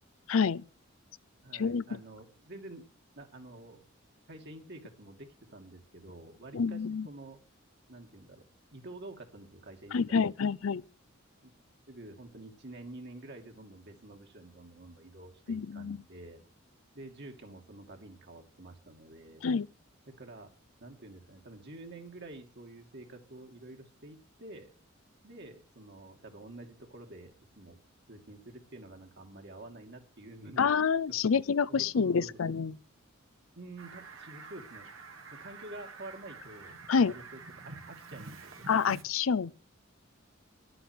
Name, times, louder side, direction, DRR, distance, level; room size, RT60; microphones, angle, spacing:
voice 1, 0.3-0.6 1.5-1.8 6.5-7.1 9.9-10.8 15.5-16.0 19.4-19.7 30.6-32.8 36.9-37.1 38.7-39.5, left 6 dB, 80° left, 0.5 m, -27 dB
voice 2, 1.4-2.8 3.2-3.8 4.3-7.4 7.9-8.4 8.7-10.3 11.4-11.5 11.9-16.4 16.9-19.4 20.1-20.5 20.8-24.7 25.2-27.8 28.1-30.7 31.2-32.4 33.6-34.9 35.3-36.8 37.0-38.5, right 2 dB, 55° right, 2.5 m, -48 dB
Fowl, 33.8-39.0, right 4 dB, 85° right, 2.2 m, -48 dB
11.0 x 7.8 x 8.1 m
head